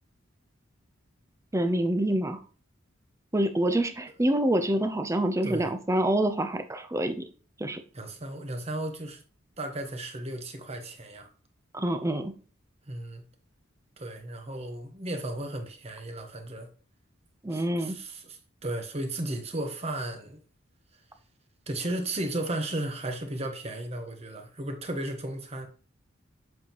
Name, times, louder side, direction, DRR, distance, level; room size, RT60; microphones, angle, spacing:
voice 1, 1.5-2.4 3.3-7.3 7.6-7.8 11.7-12.3 17.4-18.0, right 1 dB, 15° right, 0.6 m, -26 dB
voice 2, 5.4-5.7 7.9-9.2 9.6-11.3 12.9-13.2 14.0-16.7 17.5-20.4 21.7-25.7, right 1 dB, 30° right, 1.1 m, -35 dB
7.7 x 5.6 x 3.0 m
head